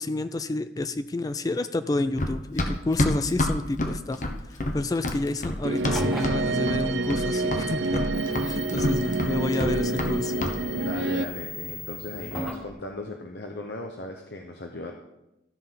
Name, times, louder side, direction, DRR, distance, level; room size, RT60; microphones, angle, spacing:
voice 1, 0.0-4.2 4.5-8.0 8.4-10.3, left 2 dB, 20° left, 11 dB, 0.3 m, -29 dB
Run, 2.2-6.4 6.7-7.3 7.5-10.1 10.4-10.6, left 1 dB, 45° left, 1.1 m, -27 dB
sound 1, 5.6-11.3, right 2 dB, 90° right, 0.6 m, -27 dB
sound 2, 5.8-12.7, equal, ahead, 1.0 m, -39 dB
voice 2, 10.7-14.9, left 2 dB, 75° left, 2 dB, 0.9 m, -37 dB
13.0 x 5.4 x 5.8 m, 0.90 s
head